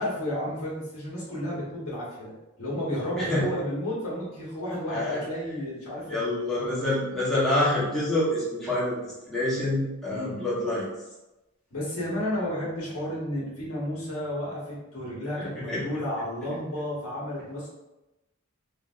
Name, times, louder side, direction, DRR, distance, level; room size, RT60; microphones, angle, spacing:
voice 1, 0.0-2.3 2.6-6.7 10.1-10.4 11.7-17.7, left 1 dB, 80° left, -7 dB, 1.4 m, -32 dB
voice 2, 4.9-5.2 6.1-10.9 15.4-15.8, left 1 dB, 5° left, -10 dB, 0.9 m, -27 dB
3.4 x 2.6 x 2.4 m, 1.0 s
head